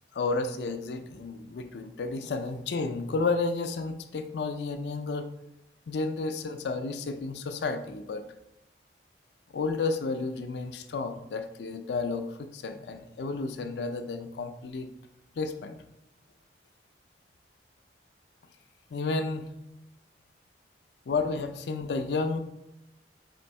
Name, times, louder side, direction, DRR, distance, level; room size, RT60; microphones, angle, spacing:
voice 1, 0.1-5.3 5.9-8.2 9.5-14.9 15.4-15.8 18.9-19.5 21.1-22.4, left 3 dB, 75° left, 8 dB, 0.4 m, -31 dB
4.4 x 2.6 x 4.1 m, 0.87 s
head